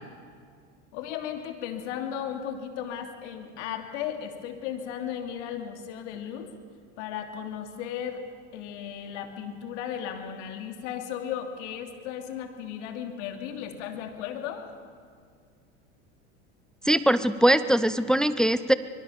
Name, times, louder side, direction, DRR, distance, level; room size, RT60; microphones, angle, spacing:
voice 1, 0.9-6.5 7.0-8.2 8.5-14.7, left 9 dB, 70° left, 5 dB, 3.0 m, -35 dB
voice 2, 16.8-18.7, right 1 dB, ahead, 13 dB, 0.7 m, -21 dB
25.0 x 22.5 x 7.2 m, 2.1 s
hypercardioid pair, 95°, 37 cm